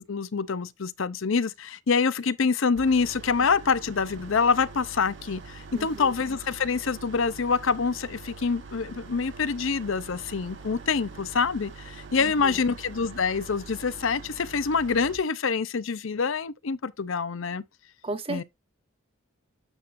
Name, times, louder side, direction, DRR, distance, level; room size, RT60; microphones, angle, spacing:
voice 1, 0.1-17.6 18.3-18.4, left 5 dB, 65° left, 0.6 m, -26 dB
sound 1, 2.7-15.2, right 4 dB, 55° right, 1.3 m, -44 dB
voice 2, 5.7-6.1 12.2-12.6 18.0-18.4, right 2 dB, 25° right, 1.2 m, -35 dB
9.0 x 6.7 x 2.6 m
head